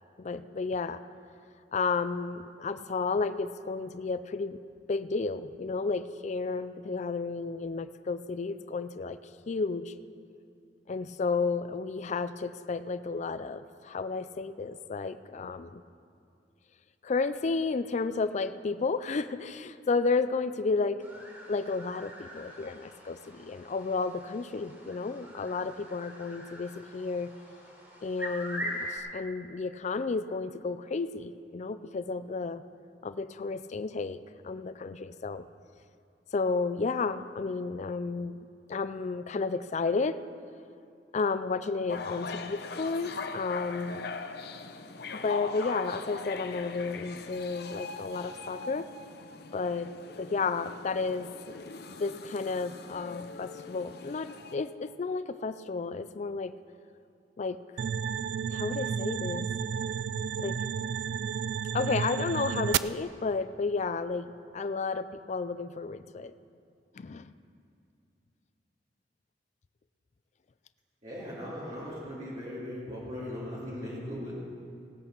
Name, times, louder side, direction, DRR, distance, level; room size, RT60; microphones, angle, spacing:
voice 1, 0.2-1.0 1.7-4.6 4.9-9.2 9.5-9.9 10.9-15.8 17.0-21.0 21.5-27.3 28.0-32.6 33.0-34.2 34.4-35.4 36.3-40.2 41.1-44.1 45.1-48.9 49.5-49.9 50.2-56.5 57.4-57.8 58.5-59.5 60.4-60.6 61.7-66.3 66.9-67.3, left 4 dB, 40° left, 12 dB, 0.4 m, -32 dB
sound 1, 21.0-29.0, equal, 10° right, 2.9 m, -43 dB
sound 2, 41.9-54.5, left 4 dB, 65° left, 0.7 m, -41 dB
sound 3, 57.8-62.8, right 7 dB, 70° right, 0.3 m, -32 dB
voice 2, 71.0-74.3, left 1 dB, 45° right, -8 dB, 2.4 m, -38 dB
17.0 x 8.8 x 6.0 m, 2.4 s
head